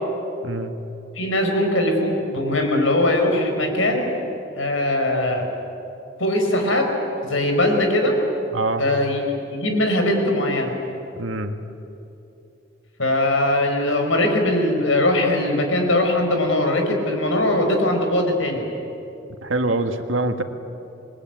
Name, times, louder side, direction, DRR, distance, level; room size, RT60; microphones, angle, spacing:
voice 1, 1.1-4.2 4.6-5.5 6.2-6.9 7.3-8.2 8.8-10.8 13.0-18.7, left 1 dB, 80° left, 3 dB, 5.1 m, -21 dB
voice 2, 8.5-8.8 11.2-11.5 19.4-20.4, right 2 dB, 80° right, 6 dB, 1.8 m, -24 dB
27.5 x 21.5 x 9.3 m, 2.9 s
head